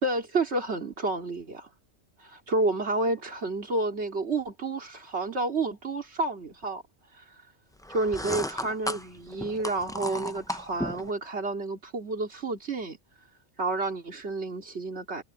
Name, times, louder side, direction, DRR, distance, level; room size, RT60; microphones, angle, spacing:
voice 1, 0.0-1.7 2.2-6.8 7.2-7.3 7.9-13.0 13.6-15.2, right 2 dB, 60° right, 3.1 m, -30 dB
sound 1, 7.8-11.1, left 1 dB, 5° left, 0.4 m, -34 dB
omnidirectional pair, 1.2 m